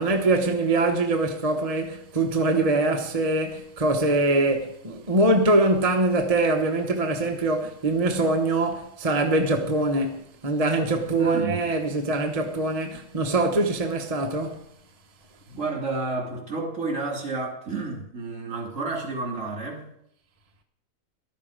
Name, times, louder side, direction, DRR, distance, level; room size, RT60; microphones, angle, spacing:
voice 1, 0.0-14.6, right 2 dB, 30° right, 1.2 m, -23 dB
voice 2, 11.2-11.6 15.5-19.9, right 3 dB, 60° right, 3.6 m, -30 dB
14.0 x 12.5 x 5.1 m
omnidirectional pair, 1.4 m